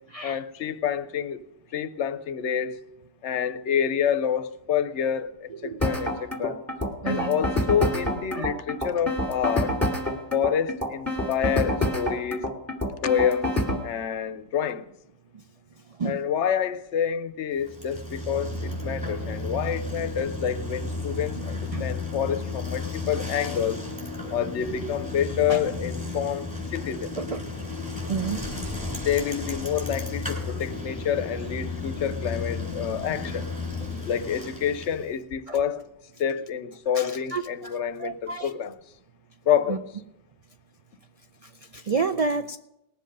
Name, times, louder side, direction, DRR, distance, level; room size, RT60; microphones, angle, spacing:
voice 1, 0.2-1.4 1.7-2.8 3.2-6.6 7.0-9.8 10.3-12.5 13.0-13.5 13.8-14.9 16.0-23.8 24.3-27.1 29.0-33.5 34.1-35.9 36.2-38.7 39.5-39.8, left 8 dB, 70° left, 0.9 m, -28 dB
voice 2, 5.5-5.8 7.0-7.4 8.3-8.5 15.3-15.4 16.0-16.2 21.7-21.9 24.3-24.4 25.5-25.6 27.2-27.4 28.1-28.4 33.9-34.1 35.5-35.6 36.9-38.5 39.7-39.8 41.4-42.6, right 4 dB, 65° right, 0.3 m, -30 dB
sound 1, 5.8-13.8, left 1 dB, 10° left, 2.0 m, -27 dB
Bicycle, 17.6-35.1, left 3 dB, 5° right, 3.7 m, -33 dB
19.5 x 7.7 x 5.3 m
omnidirectional pair, 1.3 m